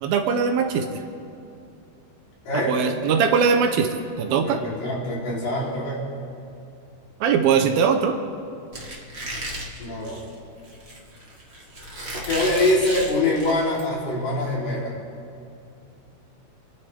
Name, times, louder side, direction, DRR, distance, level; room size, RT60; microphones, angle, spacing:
voice 1, 0.0-0.9 2.7-3.9 4.2-4.6 7.2-8.2, right 6 dB, 80° right, 5 dB, 2.4 m, -20 dB
voice 2, 2.5-2.8 4.4-6.0 9.8-10.2 12.3-14.9, left 1 dB, 85° left, -6 dB, 5.4 m, -24 dB
Squeak, 8.7-13.8, right 1 dB, 50° right, 0.7 m, -34 dB
29.5 x 11.0 x 3.4 m, 2.6 s
omnidirectional pair, 4.6 m